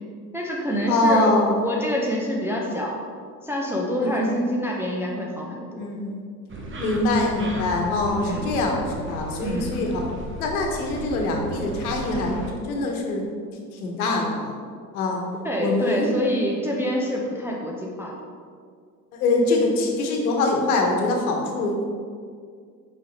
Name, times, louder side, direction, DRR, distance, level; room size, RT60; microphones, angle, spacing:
voice 1, 0.3-1.3 1.6-2.9 3.4-5.8 8.2-8.5 9.4-9.8 15.4-18.1, equal, 5° right, -3 dB, 0.5 m, -26 dB
voice 2, 0.9-1.7 4.0-4.4 5.8-6.3 6.8-10.1 10.4-13.2 13.7-14.5 14.9-15.2 15.6-16.1 19.1-21.8, left 2 dB, 60° left, 1 dB, 1.3 m, -24 dB
sound 1, 6.5-12.5, right 2 dB, 25° right, 1.0 m, -35 dB
5.5 x 5.0 x 4.1 m, 2.1 s
figure-of-eight pair, 80°, 49 cm